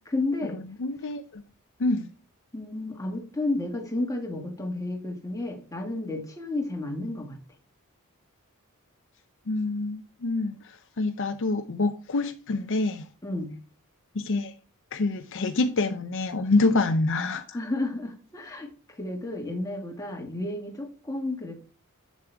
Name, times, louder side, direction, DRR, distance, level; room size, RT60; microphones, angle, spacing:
voice 1, 0.1-0.6 2.5-7.4 13.2-13.5 17.5-18.7 19.0-21.5, left 2 dB, 15° left, 1.9 m, -31 dB
voice 2, 0.8-1.4 1.8-2.1 9.5-10.6 11.0-13.0 14.1-14.5 14.9-17.6, left 3 dB, 60° left, 0.6 m, -26 dB
7.4 x 7.1 x 3.4 m
head